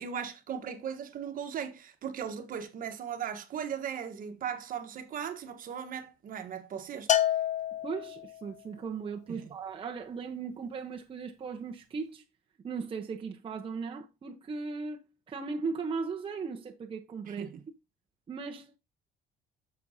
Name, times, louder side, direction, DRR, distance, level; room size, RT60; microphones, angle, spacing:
voice 1, 0.0-7.1 9.3-9.5 17.3-17.6, right 8 dB, 55° right, 1.3 m, -38 dB
Bell, 7.1-8.5, left 11 dB, 45° left, 0.8 m, -28 dB
voice 2, 7.8-12.2 12.6-15.0 15.3-17.5 18.3-18.8, right 5 dB, 30° right, 1.0 m, -37 dB
8.4 x 6.9 x 2.8 m
cardioid pair, 110°, 17 cm